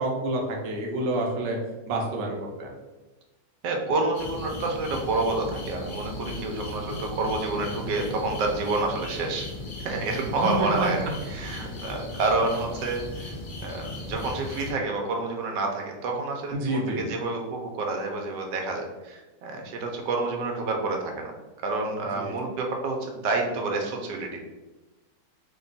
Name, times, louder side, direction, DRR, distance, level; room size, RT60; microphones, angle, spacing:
voice 1, 0.0-1.6 1.9-2.7 10.4-10.9 16.5-17.0 22.2-22.3, right 1 dB, 60° right, -1 dB, 0.9 m, -28 dB
voice 2, 3.6-9.5 9.8-11.0 11.3-13.3 13.6-21.3 21.6-24.4, right 3 dB, 85° right, 2 dB, 1.3 m, -28 dB
sound 1, 4.1-14.7, left 2 dB, 85° left, 0.4 m, -37 dB
3.4 x 2.3 x 3.9 m, 1.1 s
omnidirectional pair, 1.8 m